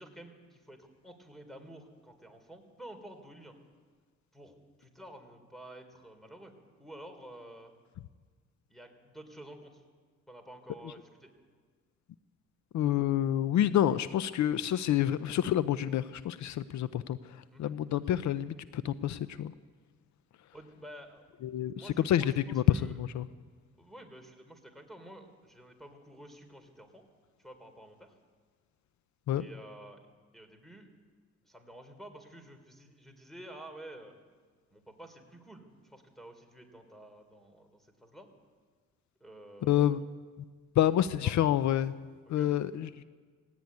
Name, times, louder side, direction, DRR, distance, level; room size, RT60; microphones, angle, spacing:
voice 1, 0.0-3.5 4.3-7.7 8.7-9.8 10.3-11.3 17.5-17.7 20.5-21.2 21.7-23.0 23.8-27.0 27.4-28.2 29.4-30.0 30.3-30.9 31.4-34.2 34.7-38.3 39.2-40.0 41.2-41.3 42.3-42.5, right 1 dB, ahead, 7 dB, 3.9 m, -50 dB
voice 2, 12.7-19.5 21.4-23.3 29.3-29.4 39.6-40.0 40.8-42.0 42.3-43.0, left 11 dB, 70° left, 14 dB, 0.7 m, -28 dB
18.0 x 17.0 x 9.6 m, 1.5 s
cardioid pair, 90°, 30 cm